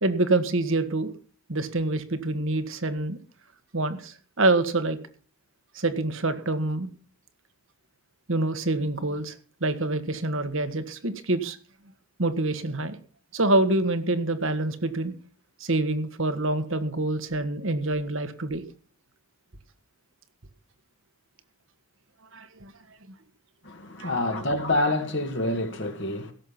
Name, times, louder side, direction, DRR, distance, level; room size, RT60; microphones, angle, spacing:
voice 1, 0.0-1.1 1.5-3.2 3.7-5.0 5.7-6.9 8.3-9.3 9.6-11.6 12.2-13.0 13.3-15.1 15.6-18.6 22.3-22.7 24.0-24.3, right 2 dB, 65° right, 1.6 m, -26 dB
voice 2, 23.6-26.3, left 2 dB, 55° left, 2.0 m, -27 dB
17.0 x 7.7 x 5.8 m
head